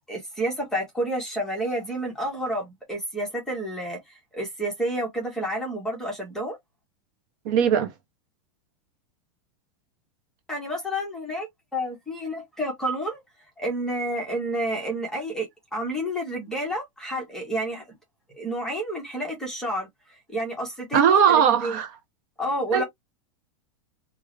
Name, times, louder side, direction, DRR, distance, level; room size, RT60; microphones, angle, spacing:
voice 1, 0.1-6.6 10.5-13.2 13.6-15.5 15.7-17.8 18.3-21.8 22.4-22.8, right 1 dB, 5° left, 0.9 m, -30 dB
voice 2, 7.4-7.9 20.9-21.9 22.7-22.8, right 8 dB, 40° right, 0.6 m, -19 dB
2.5 x 2.4 x 2.9 m
supercardioid pair, 175°, 16 cm